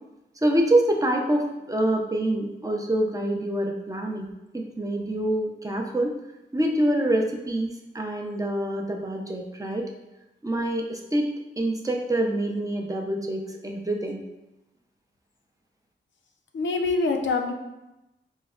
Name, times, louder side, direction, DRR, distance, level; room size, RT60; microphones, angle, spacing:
voice 1, 0.4-4.3 4.5-6.1 6.5-9.9 10.4-11.3 11.6-14.2, right 1 dB, 15° right, 1 dB, 0.5 m, -26 dB
voice 2, 16.5-17.5, left 3 dB, 75° left, 3 dB, 0.4 m, -25 dB
4.4 x 2.1 x 2.3 m, 0.96 s
cardioid pair, 55°, 20 cm